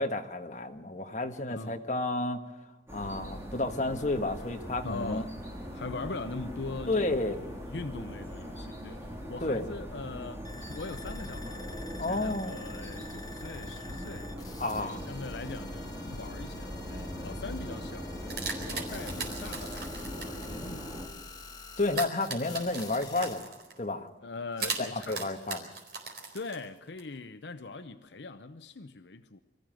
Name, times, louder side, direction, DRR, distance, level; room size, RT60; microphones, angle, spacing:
voice 1, 0.0-2.4 2.9-5.2 6.9-7.4 9.4-9.6 12.0-12.6 14.6-15.0 21.8-23.5 23.8-24.1 24.6-25.7, left 2 dB, 40° left, 1.5 m, -31 dB
voice 2, 1.5-1.8 4.8-5.4 5.7-21.1 24.2-25.3 26.3-29.4, left 3 dB, 75° left, 0.8 m, -42 dB
sound 1, 2.9-21.1, equal, 15° right, 3.9 m, -40 dB
sound 2, 10.4-23.4, left 3 dB, 20° left, 1.3 m, -47 dB
sound 3, 18.3-20.5 21.9-23.8 24.6-27.0, right 4 dB, 60° right, 4.3 m, -38 dB
24.0 x 14.5 x 7.6 m
head